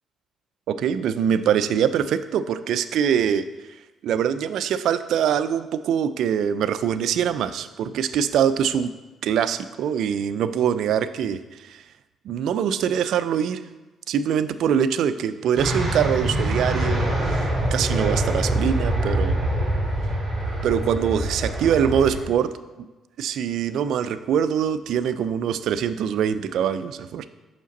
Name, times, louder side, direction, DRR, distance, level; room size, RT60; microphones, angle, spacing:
voice 1, 0.7-3.5 4.0-8.9 9.2-11.8 12.2-13.6 14.1-17.4 17.7-19.4 20.6-22.5 23.2-27.3, right 8 dB, 75° right, 13 dB, 0.3 m, -23 dB
sound 1, 15.6-22.2, right 1 dB, 35° right, 2.1 m, -24 dB
5.9 x 5.0 x 4.0 m, 1.2 s
cardioid pair, 90°, 0 cm